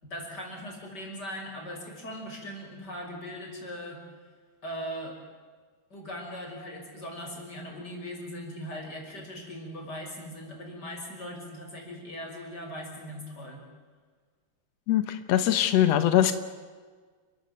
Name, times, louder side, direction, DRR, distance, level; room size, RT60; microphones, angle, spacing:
voice 1, 0.0-4.0 4.6-5.2 5.9-13.6, equal, 25° left, 1 dB, 6.2 m, -39 dB
voice 2, 14.9-16.3, left 11 dB, 75° left, 11 dB, 1.5 m, -22 dB
30.0 x 14.5 x 9.4 m, 1.5 s
omnidirectional pair, 4.5 m